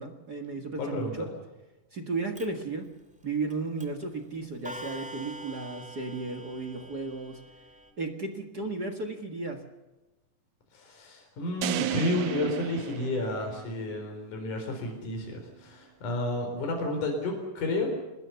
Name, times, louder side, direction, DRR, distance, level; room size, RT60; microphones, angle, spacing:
voice 1, 0.0-1.3 1.9-2.9 3.2-7.4 8.0-9.6, right 3 dB, 40° right, 5 dB, 1.7 m, -34 dB
voice 2, 0.8-1.2 10.7-17.9, left 1 dB, 65° left, 2 dB, 5.5 m, -31 dB
Clock, 2.3-2.5 3.5-3.6 3.8-4.1 4.6-7.9, right 1 dB, 5° right, 1.9 m, -44 dB
sound 1, 11.6-13.9, right 12 dB, 70° right, 2.3 m, -34 dB
25.5 x 20.5 x 7.0 m, 1.1 s
omnidirectional pair, 3.8 m